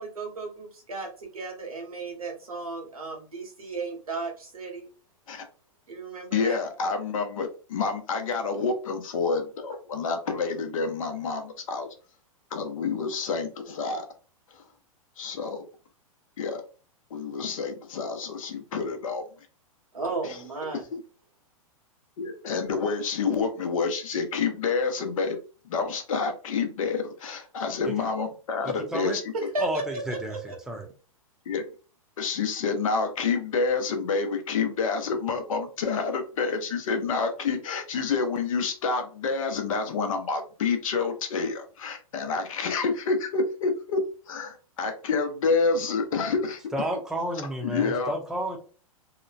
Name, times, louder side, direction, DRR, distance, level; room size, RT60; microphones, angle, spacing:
voice 1, 0.0-4.9 5.9-6.6 19.9-20.8 29.3-30.6, right 3 dB, 90° right, 1 dB, 1.1 m, -34 dB
voice 2, 6.3-11.9 12.5-14.1 15.2-15.7 16.4-16.6 17.1-19.2 20.2-20.3 22.2-25.4 25.6-29.2 31.5-31.6 32.2-44.0 44.3-46.6 47.6-48.1, left 4 dB, 65° left, 6 dB, 0.7 m, -28 dB
voice 3, 28.6-29.2 29.6-30.4 30.7-30.9 46.7-48.6, right 1 dB, 5° right, 2 dB, 0.6 m, -31 dB
2.9 x 2.1 x 2.4 m, 0.37 s
hypercardioid pair, 110°, 18 cm